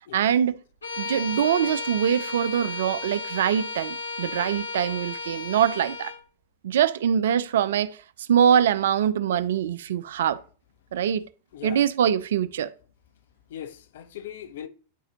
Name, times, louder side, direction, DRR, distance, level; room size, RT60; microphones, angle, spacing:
voice 1, 0.1-0.6 1.0-6.1 6.6-8.0 8.3-10.4 10.9-11.2 11.6-12.7, right 9 dB, 60° right, 0.4 m, -23 dB
Bowed string instrument, 0.8-6.2, left 3 dB, 75° left, 1.4 m, -34 dB
voice 2, 11.5-11.8 13.5-14.7, left 10 dB, 55° left, 0.6 m, -39 dB
9.7 x 4.0 x 2.8 m
figure-of-eight pair, 90°, 0 cm